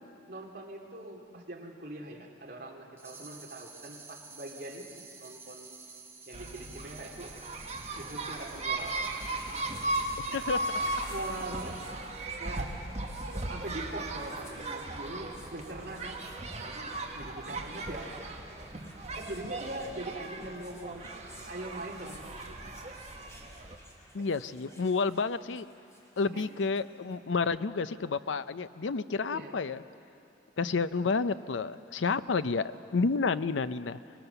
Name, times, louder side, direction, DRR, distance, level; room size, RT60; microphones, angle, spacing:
voice 1, 0.0-5.8 6.3-7.4 8.0-9.2 11.1-11.9 12.4-12.7 13.3-16.2 16.5-18.1 19.2-22.8 26.2-26.4 29.2-29.5 30.7-30.8, right 1 dB, 55° right, 0 dB, 2.6 m, -42 dB
sound 1, 3.0-12.1, right 4 dB, 15° right, 0.9 m, -50 dB
sound 2, 6.3-23.8, right 2 dB, 35° right, 1.6 m, -37 dB
sound 3, 9.1-27.2, equal, 15° left, 2.6 m, -54 dB
voice 2, 10.3-10.8 24.1-25.7 26.2-29.8 30.6-34.0, left 4 dB, 85° left, 14 dB, 0.6 m, -30 dB
25.0 x 19.5 x 7.0 m, 2.6 s
head